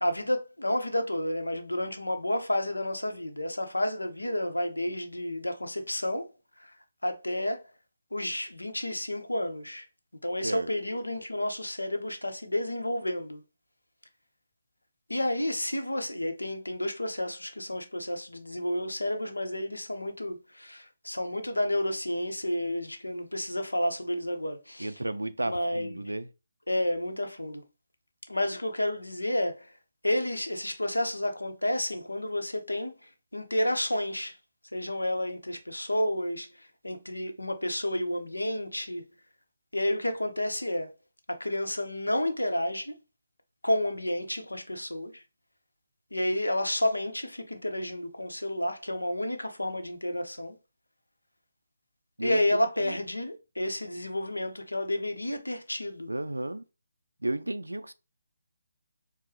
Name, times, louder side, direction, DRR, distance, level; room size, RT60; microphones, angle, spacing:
voice 1, 0.0-6.3 6.6-6.7 7.0-7.6 8.1-9.8 10.2-13.4 15.1-25.0 25.4-26.1 26.7-27.6 28.3-29.7 30.0-34.4 34.7-39.0 39.7-40.9 41.3-42.9 43.6-45.2 46.1-50.6 52.2-56.1, left 1 dB, 90° left, 0.7 m, -31 dB
voice 2, 24.8-26.3 52.2-52.6 52.8-53.0 56.1-56.6 57.2-57.9, right 1 dB, 85° right, 0.3 m, -33 dB
4.5 x 2.0 x 3.0 m
figure-of-eight pair, 150°, 0 cm